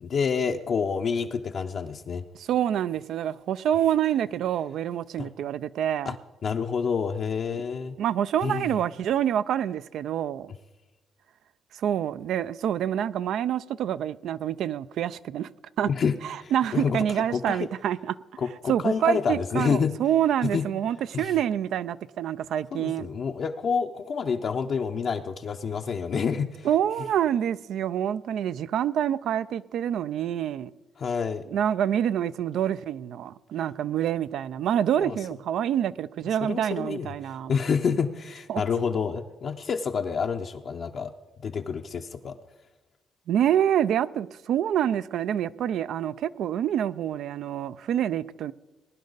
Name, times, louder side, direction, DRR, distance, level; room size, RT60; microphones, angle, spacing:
voice 1, 0.0-2.3 5.2-5.3 6.1-6.2 6.4-7.9 8.4-8.7 15.9-17.0 17.3-17.6 18.4-19.9 20.5-20.7 21.1-21.3 22.7-26.7 31.0-31.4 35.0-35.1 36.4-37.1 37.5-41.1 41.4-42.3, left 6 dB, 55° left, 0.6 m, -28 dB
voice 2, 2.3-6.2 8.0-10.5 11.7-15.5 15.8-15.9 16.2-18.2 18.7-23.1 26.6-30.7 31.5-37.5 38.5-38.6 43.3-48.5, right 10 dB, 75° right, 0.4 m, -27 dB
20.5 x 10.5 x 4.0 m
cardioid pair, 90°, 0 cm